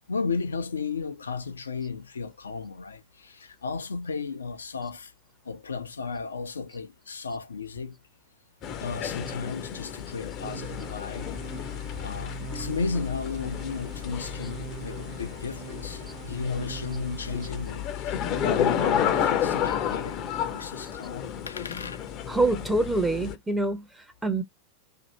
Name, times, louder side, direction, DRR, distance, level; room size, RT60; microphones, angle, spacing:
voice 1, 0.1-5.1 5.5-8.0 8.8-11.3 12.0-20.2 20.5-22.0, left 4 dB, 70° left, 0.6 m, -34 dB
sound 1, 8.6-23.4, left 9 dB, 35° left, 0.7 m, -31 dB
sound 2, 10.4-18.0, right 14 dB, 45° right, 0.5 m, -44 dB
voice 2, 22.3-24.4, right 2 dB, 5° right, 0.7 m, -26 dB
2.8 x 2.7 x 4.3 m
figure-of-eight pair, 90°, 0 cm